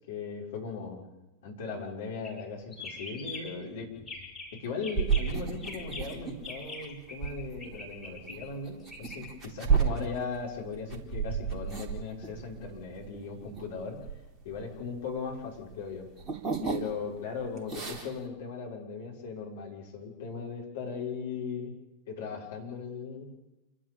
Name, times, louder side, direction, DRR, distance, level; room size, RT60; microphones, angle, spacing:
voice 1, 0.1-1.1 1.4-4.0 4.5-14.0 14.4-16.1 16.7-21.8 22.1-23.3, left 5 dB, 60° left, -1 dB, 6.2 m, -38 dB
sound 1, 2.2-2.4 2.7-3.6 4.0-4.5 4.8-7.3 7.6-9.2, left 3 dB, 10° left, 7.8 m, -43 dB
sound 2, 4.9-15.3 15.6-17.2 17.5-18.2, right 6 dB, 25° right, 3.9 m, -32 dB
28.5 x 13.0 x 8.8 m, 1.0 s
figure-of-eight pair, 90°, 0 cm